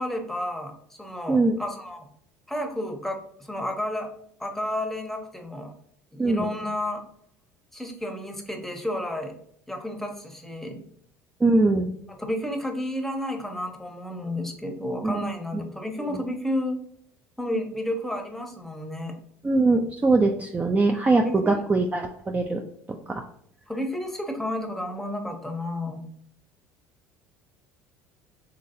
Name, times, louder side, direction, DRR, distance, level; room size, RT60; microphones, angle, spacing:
voice 1, 0.0-2.1 2.5-4.1 4.4-5.7 6.1-7.0 7.7-9.3 9.7-10.8 12.2-16.8 17.4-19.1 21.2-21.6 23.7-26.1, left 1 dB, 5° left, 4 dB, 0.8 m, -31 dB
voice 2, 11.4-11.9 15.0-15.3 16.1-16.2 19.4-22.6 22.9-23.2, right 3 dB, 20° right, 2 dB, 0.4 m, -22 dB
4.0 x 3.1 x 2.6 m, 0.69 s
hypercardioid pair, 75°, 8 cm